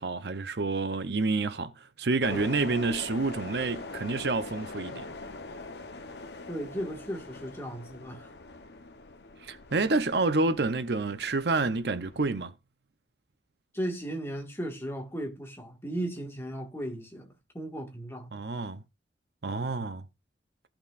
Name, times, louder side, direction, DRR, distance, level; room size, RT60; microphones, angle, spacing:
voice 1, 0.0-5.1 9.4-12.5 18.3-18.8 19.4-20.0, right 3 dB, 65° right, 0.7 m, -28 dB
Subway Pass Train, 2.2-12.4, left 2 dB, 65° left, 0.9 m, -43 dB
voice 2, 6.5-8.3 13.7-17.3 17.5-18.3, right 1 dB, 15° left, 1.7 m, -36 dB
16.5 x 5.9 x 2.5 m
head